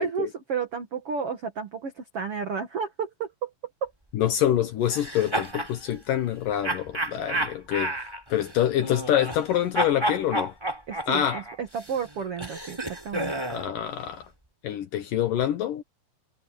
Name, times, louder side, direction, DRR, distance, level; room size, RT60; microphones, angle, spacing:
voice 1, 0.0-3.5 3.8-3.9 10.9-13.4, right 6 dB, 75° right, 1.3 m, -32 dB
voice 2, 4.1-7.9 8.3-10.5 11.1-11.4 13.5-14.3 14.6-15.8, left 11 dB, 70° left, 2.1 m, -26 dB
sound 1, 4.9-5.7 6.6-9.5 9.7-13.7, right 1 dB, 5° right, 3.7 m, -31 dB
omnidirectional pair, 5.2 m